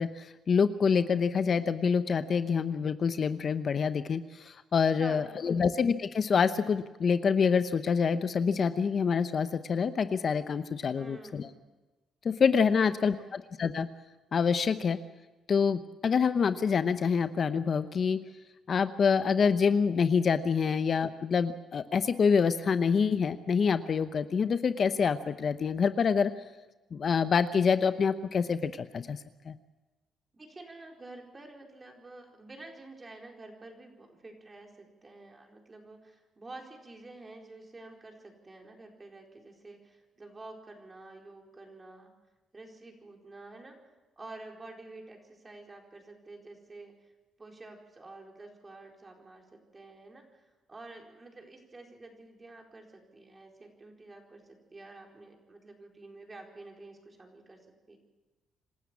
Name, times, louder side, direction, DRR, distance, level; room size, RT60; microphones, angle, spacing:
voice 1, 0.0-11.5 12.2-13.9 14.3-15.0 15.5-18.2 18.7-26.3 26.9-29.2 29.5-29.6, left 6 dB, 50° left, 11 dB, 0.8 m, -26 dB
voice 2, 5.0-5.7 11.0-11.6 12.7-12.9 13.1-13.4 30.3-42.1 42.5-43.8 44.2-47.1 47.4-58.0, right 2 dB, 25° right, 1 dB, 4.4 m, -49 dB
26.5 x 12.5 x 8.4 m, 1.1 s
cardioid pair, 90°, 0 cm